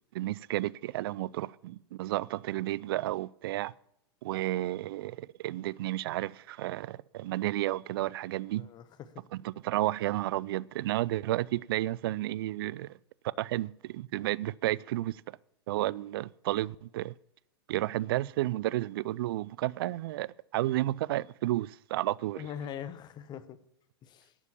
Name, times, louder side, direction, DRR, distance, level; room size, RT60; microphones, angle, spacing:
voice 1, 0.1-3.7 4.2-8.7 9.3-13.0 13.4-15.4 15.7-17.1 17.7-22.5, right 15 dB, 60° right, 0.4 m, -32 dB
voice 2, 8.6-9.3 22.4-23.6 24.0-24.3, left 9 dB, 30° left, 1.0 m, -42 dB
11.0 x 7.1 x 8.5 m
hypercardioid pair, 105°, 14 cm